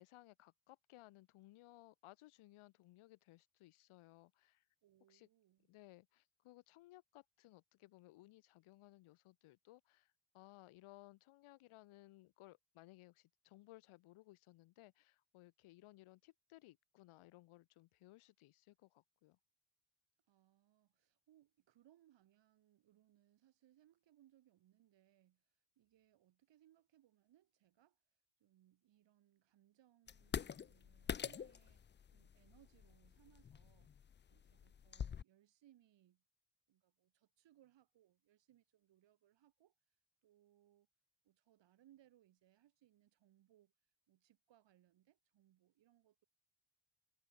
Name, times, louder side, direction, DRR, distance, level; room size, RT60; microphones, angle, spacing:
voice 1, 0.0-4.7 5.1-5.3 5.7-19.4, left 18 dB, 90° left, 3.8 m, -62 dB
voice 2, 4.8-5.7 20.3-28.0 28.4-36.2 36.7-39.7 40.2-40.9 41.2-43.7 44.1-46.2, right 12 dB, 60° right, 5.1 m, -71 dB
sound 1, 30.1-35.2, left 7 dB, 25° left, 0.5 m, -46 dB
cardioid pair, 140°, 48 cm